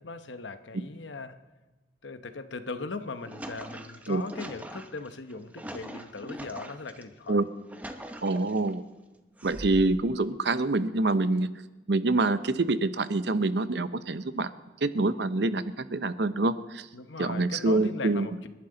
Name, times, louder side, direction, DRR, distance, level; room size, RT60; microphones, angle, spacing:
voice 1, 0.0-1.4 2.0-7.4 16.9-18.5, left 3 dB, 80° left, 10 dB, 1.0 m, -39 dB
sound 1, 3.1-7.0 7.5-8.7 9.4-10.1, right 1 dB, 10° right, 0.8 m, -42 dB
voice 2, 8.2-8.8 9.4-11.5 11.9-14.5 14.8-16.9 17.2-18.3, right 2 dB, 65° right, 13 dB, 0.7 m, -26 dB
30.0 x 11.5 x 3.9 m, 1.1 s
head